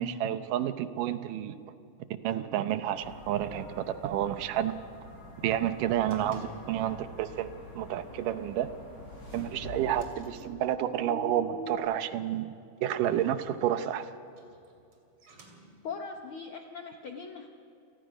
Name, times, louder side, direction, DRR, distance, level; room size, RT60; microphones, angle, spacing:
voice 1, 0.0-1.6 2.2-4.8 5.4-8.7 9.3-12.5 12.8-14.1, right 11 dB, 80° right, 11 dB, 2.4 m, -30 dB
sound 1, 2.9-10.1, left 2 dB, 50° left, 8.3 m, -47 dB
sound 2, 5.0-11.8, right 2 dB, 10° left, 3.0 m, -48 dB
sound 3, 6.1-7.1 7.4-7.7 8.1-8.2 8.6-8.7 9.3-11.3 12.7-16.1, right 1 dB, 45° right, 3.5 m, -56 dB
voice 2, 15.8-17.5, left 5 dB, 70° left, 4 dB, 1.2 m, -40 dB
29.0 x 18.5 x 5.1 m, 2.6 s
omnidirectional pair, 3.8 m